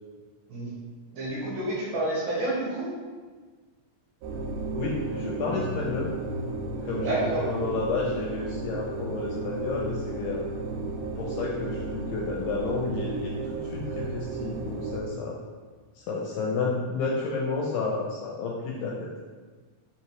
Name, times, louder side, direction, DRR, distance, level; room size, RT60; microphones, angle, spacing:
voice 1, 1.1-2.9 6.9-7.4, right 1 dB, 75° right, -7 dB, 2.6 m, -29 dB
sound 1, 4.2-15.0, right 3 dB, 90° right, 2.5 m, -34 dB
voice 2, 4.7-6.1 6.8-10.4 11.2-13.4 13.6-15.4 16.0-19.0, left 3 dB, 80° left, -2 dB, 1.9 m, -31 dB
5.8 x 2.7 x 3.0 m, 1.4 s
omnidirectional pair, 4.2 m